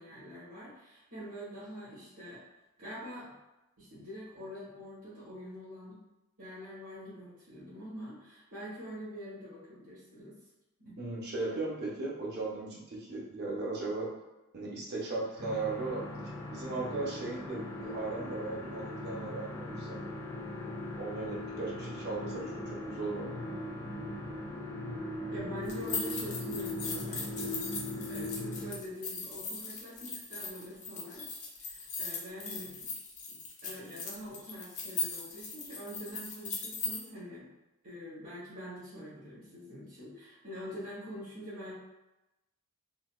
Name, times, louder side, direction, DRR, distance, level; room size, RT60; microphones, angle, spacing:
voice 1, 0.0-2.4 2.8-3.3 3.8-6.0 6.4-10.4 10.8-11.0 25.3-27.7 28.1-32.9 33.6-37.5 37.8-41.8, equal, 70° right, -12 dB, 1.5 m, -45 dB
voice 2, 11.0-14.1 14.5-20.0 21.0-23.3, right 3 dB, 45° right, -4 dB, 0.8 m, -37 dB
sound 1, 15.4-28.7, left 1 dB, 75° left, 1.3 m, -39 dB
sound 2, 25.7-37.0, left 4 dB, 35° left, 0.6 m, -39 dB
3.8 x 2.2 x 2.4 m, 1.0 s
head